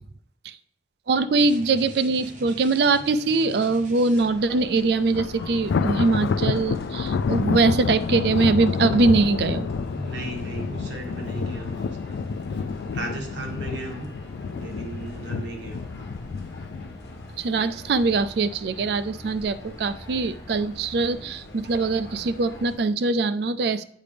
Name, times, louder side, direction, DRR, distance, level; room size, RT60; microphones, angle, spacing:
voice 1, 1.1-9.7 17.4-23.8, right 3 dB, 60° right, 13 dB, 0.4 m, -22 dB
sound 1, 1.4-4.6, right 1 dB, 45° right, 1.1 m, -44 dB
sound 2, 4.1-22.8, left 1 dB, 60° left, 1.5 m, -43 dB
Thunder, 5.1-18.4 18.8-19.1 19.5-19.6 20.4-21.0, left 5 dB, 80° left, 0.3 m, -29 dB
voice 2, 9.7-12.2 12.5-12.6 12.9-14.1 14.5-15.8, right 2 dB, 80° right, 2 dB, 1.5 m, -36 dB
8.4 x 4.9 x 3.4 m, 0.65 s
head